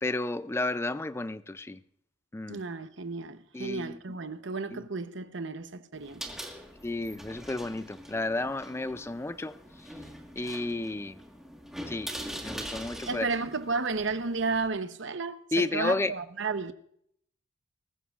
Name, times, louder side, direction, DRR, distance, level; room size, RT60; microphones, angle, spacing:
voice 1, 0.0-1.8 2.3-2.6 3.5-4.2 4.7-4.8 6.8-9.6 10.4-11.2 11.9-12.1 12.4-13.3 15.5-16.1, left 2 dB, 15° left, 0.4 m, -32 dB
voice 2, 2.5-6.3 13.1-16.7, right 4 dB, 70° right, 0.9 m, -33 dB
sound 1, 5.9-14.7, equal, ahead, 1.6 m, -43 dB
20.0 x 14.5 x 2.4 m
head